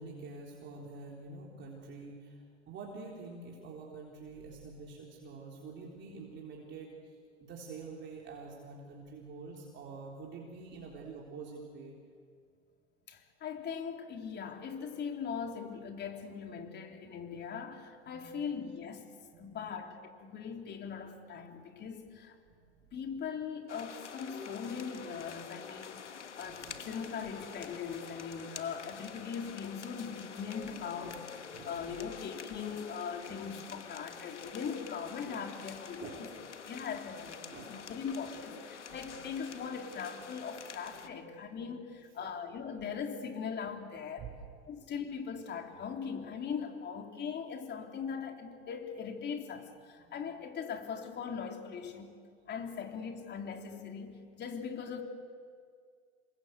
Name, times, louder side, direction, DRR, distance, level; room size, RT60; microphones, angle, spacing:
voice 1, 0.0-12.0 18.1-18.7 19.3-19.7 22.5-23.0 26.4-26.8 30.6-30.7 31.0-31.2 31.5-32.1 33.3-33.6 34.0-34.3 35.3-35.4 36.0-36.3 37.5-37.8 39.0-39.2 40.9-41.4 41.7-41.8 42.2-42.4 44.2-44.3 50.1-50.2, right 4 dB, 30° right, -2 dB, 4.0 m, -47 dB
voice 2, 13.1-19.0 19.4-22.4 22.9-31.3 31.6-36.3 36.6-44.3 44.7-52.2 52.5-55.0, left 6 dB, 30° left, 3 dB, 3.5 m, -40 dB
sound 1, 23.7-41.1, left 6 dB, 90° left, 1.5 m, -47 dB
28.0 x 23.0 x 8.1 m, 2.1 s
hypercardioid pair, 100°, 35 cm